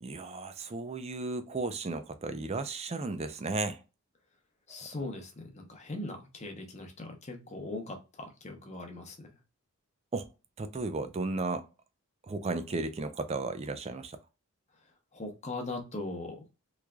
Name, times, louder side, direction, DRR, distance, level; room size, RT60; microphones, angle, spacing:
voice 1, 0.0-3.8 4.7-4.9 10.1-10.3 10.6-11.6 12.3-14.2, right 3 dB, 30° right, 0.4 m, -34 dB
voice 2, 4.7-9.3 15.1-16.4, left 2 dB, 30° left, 0.8 m, -40 dB
3.6 x 3.1 x 2.2 m
head